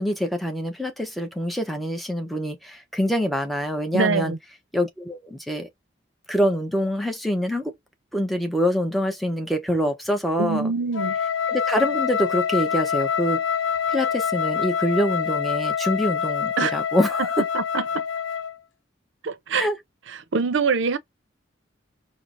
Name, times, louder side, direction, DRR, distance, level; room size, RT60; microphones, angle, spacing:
voice 1, 0.0-4.3 4.7-5.7 6.3-7.7 8.1-10.7 11.5-13.4 13.9-17.4 19.5-19.8, equal, ahead, 0.7 m, -25 dB
voice 2, 3.9-4.4 10.4-11.2 16.6-16.7 17.5-18.0 19.2-19.7 20.1-21.0, right 5 dB, 80° right, 0.6 m, -24 dB
Wind instrument woodwind instrument, 10.9-18.6, left 7 dB, 80° left, 0.5 m, -26 dB
4.5 x 2.1 x 2.5 m
head